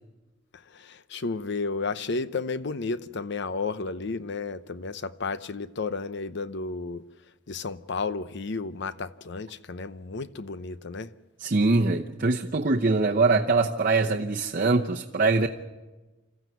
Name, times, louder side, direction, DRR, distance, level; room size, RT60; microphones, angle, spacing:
voice 1, 0.7-7.0 7.5-11.1, left 4 dB, 60° left, 0.8 m, -32 dB
voice 2, 11.4-15.5, right 3 dB, 45° right, 0.8 m, -23 dB
27.0 x 14.0 x 9.3 m
head